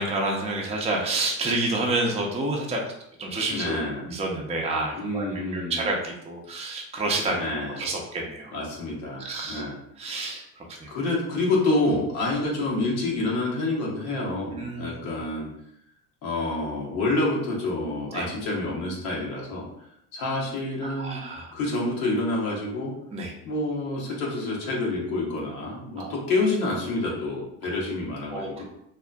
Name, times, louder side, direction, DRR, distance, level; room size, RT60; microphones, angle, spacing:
voice 1, 0.0-2.8 3.2-3.8 4.0-5.2 5.5-7.5 7.8-8.6 9.2-9.6 10.0-10.9 14.6-14.9 18.1-18.3 21.0-21.5 23.1-23.3 26.0-26.2 28.3-28.6, right 2 dB, 15° right, 0 dB, 0.5 m, -29 dB
voice 2, 3.5-4.1 5.0-5.9 7.3-7.9 8.5-9.8 10.9-15.5 16.2-19.6 20.1-21.2 21.5-22.9 23.4-28.6, left 2 dB, 90° left, -3 dB, 0.9 m, -28 dB
2.7 x 2.4 x 2.2 m, 0.75 s
supercardioid pair, 80°, 42 cm